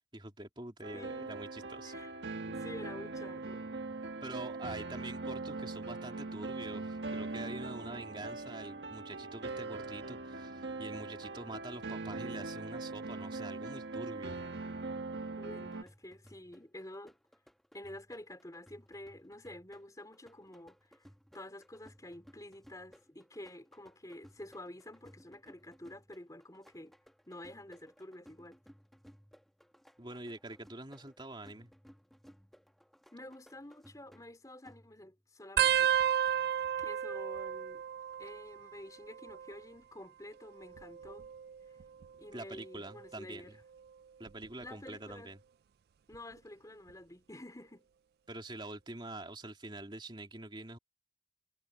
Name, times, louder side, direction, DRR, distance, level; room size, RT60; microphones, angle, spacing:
voice 1, 0.1-1.9 4.2-14.4 30.0-31.7 42.3-43.6 44.2-45.4 48.3-50.8, right 2 dB, 25° right, 3.0 m, -45 dB
sound 1, 0.8-15.8, right 3 dB, 70° right, 1.7 m, -41 dB
voice 2, 0.9-1.4 1.8-2.1 2.5-3.7 15.3-17.2 17.7-21.1 21.3-27.0 27.3-28.6 33.1-35.9 36.3-37.8 38.2-41.3 42.2-43.6 44.6-45.3 46.1-47.9, left 1 dB, 20° left, 3.3 m, -49 dB
sound 2, 15.6-35.2, equal, ahead, 1.7 m, -61 dB
sound 3, 35.6-38.7 39.0-39.6 40.6-42.1 42.7-43.1 44.3-44.6 46.1-46.2, right 10 dB, 55° right, 0.3 m, -33 dB
head